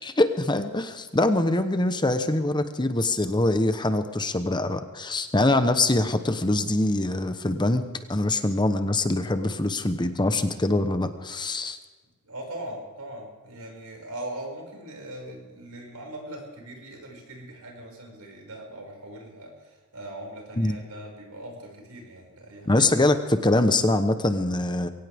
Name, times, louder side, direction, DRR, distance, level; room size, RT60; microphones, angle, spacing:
voice 1, 0.0-7.8 8.1-11.8 20.6-20.8 22.7-24.9, left 2 dB, 20° left, 9 dB, 1.0 m, -23 dB
voice 2, 12.2-22.9, right 1 dB, 85° right, 0 dB, 6.2 m, -40 dB
22.5 x 17.5 x 3.6 m, 1.3 s
head